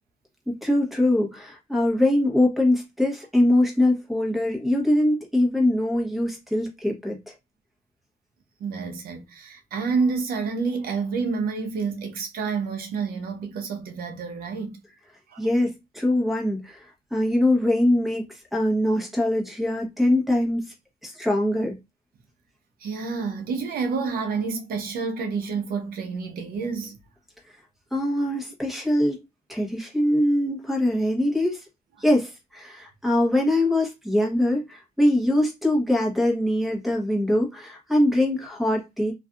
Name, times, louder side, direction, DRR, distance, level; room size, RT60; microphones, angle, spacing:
voice 1, 0.6-7.3 15.4-20.7 21.0-21.8 27.9-29.2 29.5-31.6 32.0-39.1, left 1 dB, ahead, 1.0 m, -23 dB
voice 2, 8.6-14.8 15.3-15.4 22.8-27.0, right 5 dB, 65° right, 0.7 m, -29 dB
2.6 x 2.3 x 2.4 m
cardioid pair, 110°, 17 cm